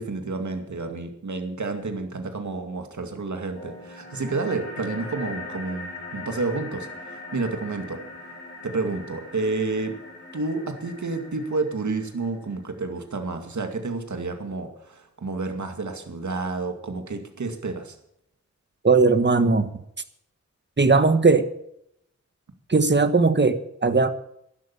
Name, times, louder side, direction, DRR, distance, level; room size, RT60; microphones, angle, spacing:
voice 1, 0.0-8.0 8.6-9.9 10.3-18.0, right 3 dB, 80° right, 5 dB, 2.2 m, -30 dB
sound 1, 3.5-12.5, left 2 dB, 40° left, 6.9 m, -40 dB
voice 2, 18.8-19.7 20.8-21.5 22.7-24.1, right 4 dB, 40° right, 10 dB, 1.4 m, -18 dB
12.0 x 12.0 x 7.0 m, 0.75 s
wide cardioid pair, 70°, 29 cm